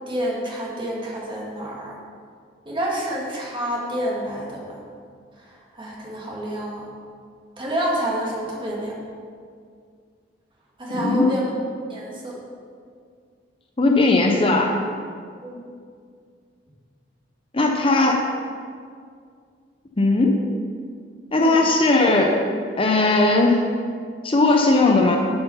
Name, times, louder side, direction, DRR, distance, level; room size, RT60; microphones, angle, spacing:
voice 1, 0.1-1.9 2.7-4.8 5.4-6.9 7.6-9.0 10.8-11.4 11.9-12.4 15.4-15.6 21.4-21.6, equal, 25° right, -4 dB, 2.0 m, -28 dB
voice 2, 10.9-11.3 13.8-14.8 17.5-18.3 20.0-20.4 21.3-22.4 22.8-23.6 24.2-25.2, left 2 dB, 30° left, 2 dB, 0.7 m, -18 dB
11.0 x 5.9 x 5.6 m, 2.2 s
head